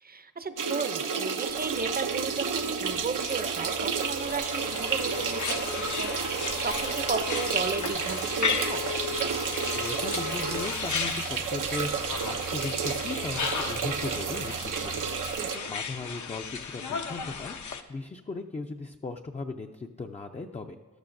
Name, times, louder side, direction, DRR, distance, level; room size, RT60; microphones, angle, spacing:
voice 1, 0.0-8.9 15.4-15.7, right 4 dB, 30° right, 10 dB, 0.6 m, -35 dB
sound 1, 0.6-15.6, right 6 dB, 85° right, 0.7 m, -31 dB
sound 2, 1.5-15.3, right 1 dB, 55° right, 1.0 m, -47 dB
sound 3, 3.2-17.8, left 6 dB, 70° left, 0.7 m, -35 dB
voice 2, 9.7-15.1 15.4-20.8, left 3 dB, 20° left, 3 dB, 0.4 m, -37 dB
14.5 x 12.0 x 2.6 m, 1.2 s
wide cardioid pair, 90°, 31 cm